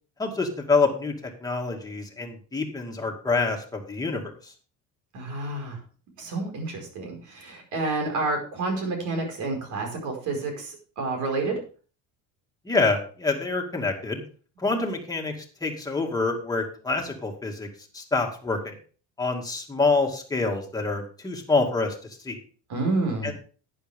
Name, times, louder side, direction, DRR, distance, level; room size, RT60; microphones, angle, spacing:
voice 1, 0.2-4.5 12.6-14.2 14.6-17.7 17.9-18.7 19.2-22.0 22.2-22.4 23.2-23.3, left 3 dB, 10° left, 1 dB, 2.2 m, -26 dB
voice 2, 5.1-5.8 6.2-11.6 22.7-23.3, right 3 dB, 65° right, 2 dB, 5.0 m, -29 dB
11.5 x 9.7 x 3.5 m, 0.40 s
cardioid pair, 150°, 32 cm